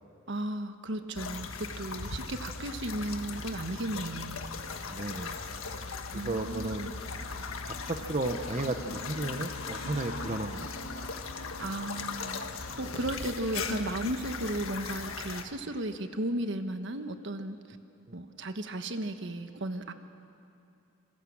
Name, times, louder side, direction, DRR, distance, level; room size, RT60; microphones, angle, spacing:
voice 1, 0.3-4.4 6.1-6.9 11.6-12.4 12.8-17.8 18.1-19.9, right 1 dB, 60° right, 8 dB, 1.3 m, -35 dB
sound 1, 1.1-15.4, left 4 dB, 90° left, 1.6 m, -38 dB
voice 2, 4.9-5.4 6.1-6.9 7.6-11.1 18.1-18.2, right 2 dB, 35° right, 6 dB, 0.9 m, -34 dB
27.0 x 23.0 x 7.4 m, 2.6 s
head